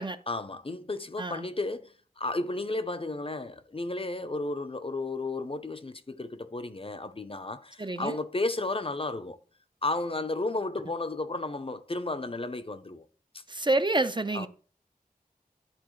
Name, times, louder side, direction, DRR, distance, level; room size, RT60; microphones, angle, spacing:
voice 1, 0.3-9.4 9.8-13.1 14.3-14.5, left 2 dB, 35° left, 0.6 m, -33 dB
voice 2, 7.8-8.2 13.5-14.5, right 2 dB, 30° right, 0.5 m, -28 dB
11.5 x 4.0 x 3.1 m
wide cardioid pair, 60°, 16 cm